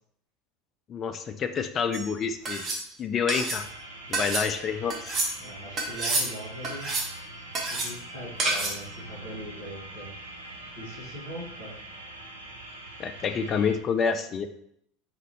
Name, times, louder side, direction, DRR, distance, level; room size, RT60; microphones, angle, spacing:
voice 1, 0.9-2.6 3.0-3.7 4.1-5.0 13.0-14.5, left 6 dB, 35° left, 8 dB, 0.4 m, -28 dB
sound 1, 1.9-2.1 2.4-2.8 3.3-3.6 4.1-4.5 4.9-5.3 5.8-6.3 6.6-7.1 7.5-7.9 8.4-8.8, right 2 dB, 35° right, 1.1 m, -28 dB
sound 2, 3.5-13.8, right 2 dB, 85° right, 0.8 m, -43 dB
voice 2, 5.4-6.9 7.7-10.3 10.8-11.7, equal, 70° right, -8 dB, 1.8 m, -41 dB
4.1 x 4.1 x 3.0 m, 0.70 s
figure-of-eight pair, 75°, 0 cm